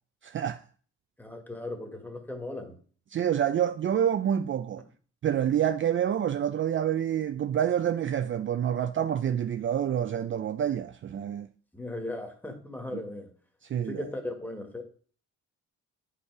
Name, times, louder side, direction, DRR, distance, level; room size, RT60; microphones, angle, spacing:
voice 1, 0.2-0.6 3.1-4.8 5.2-11.5 12.9-13.0 13.7-14.0, right 9 dB, 40° right, 0.5 m, -27 dB
voice 2, 1.2-2.7 11.7-13.3 13.8-14.8, left 1 dB, 5° left, 1.8 m, -37 dB
8.4 x 5.5 x 4.8 m
cardioid pair, 90°, 30 cm